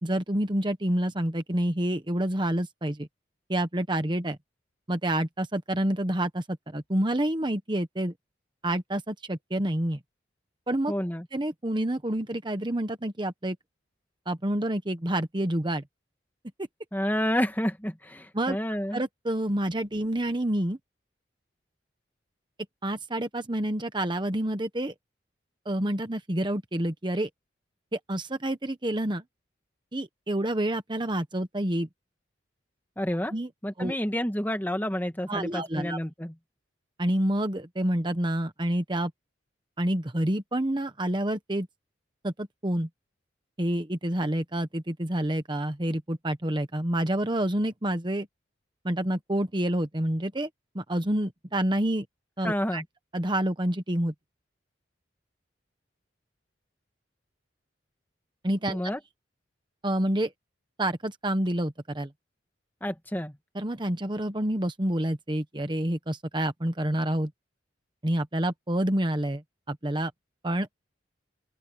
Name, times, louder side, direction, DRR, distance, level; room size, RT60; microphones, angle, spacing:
voice 1, 0.0-3.1 3.5-4.4 4.9-6.4 6.7-8.1 8.6-10.0 10.7-10.9 11.3-13.6 14.3-15.8 16.6-16.7 18.3-18.6 18.9-20.8 22.8-24.9 25.6-27.3 27.9-29.2 29.9-31.9 33.3-33.5 33.8-33.9 35.3-36.0 37.0-39.1 39.8-41.7 42.2-42.9 43.6-48.3 48.8-50.5 50.7-52.1 52.4-52.8 53.1-54.1 58.4-58.9 59.8-60.3 60.8-62.1 63.5-67.3 68.0-69.4 69.7-70.1 70.4-70.7, right 1 dB, 25° right, 1.1 m, -28 dB
voice 2, 10.9-11.3 16.9-19.0 33.0-33.3 33.6-36.3 52.4-52.8 58.7-59.0 62.8-63.4, equal, 10° left, 1.7 m, -29 dB
open air
head